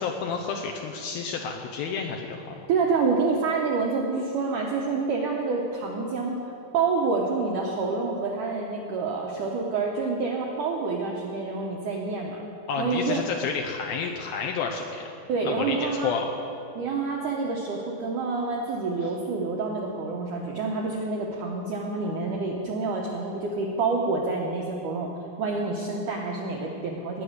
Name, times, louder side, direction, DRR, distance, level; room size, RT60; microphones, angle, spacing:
voice 1, 0.0-2.6 12.7-15.1 15.4-16.3 19.0-19.1, left 5 dB, 75° left, 2 dB, 2.2 m, -30 dB
voice 2, 2.7-6.4 6.7-12.4 12.8-13.3 15.3-16.2 16.8-25.1 25.4-27.2, right 4 dB, 75° right, -1 dB, 1.8 m, -27 dB
18.5 x 9.7 x 6.5 m, 2.8 s
omnidirectional pair, 5.1 m